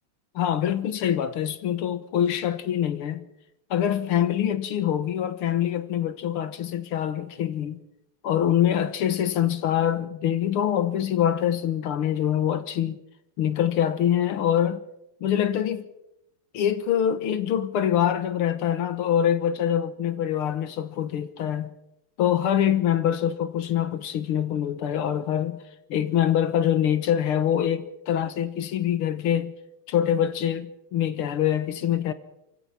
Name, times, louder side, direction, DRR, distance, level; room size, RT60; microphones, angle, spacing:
voice 1, 0.4-3.3 3.7-7.8 8.2-13.0 13.4-14.8 15.2-15.9 16.5-21.7 22.2-25.6 25.9-29.5 29.9-32.1, left 10 dB, 85° left, 2.1 m, -24 dB
28.0 x 16.0 x 5.9 m
omnidirectional pair, 2.4 m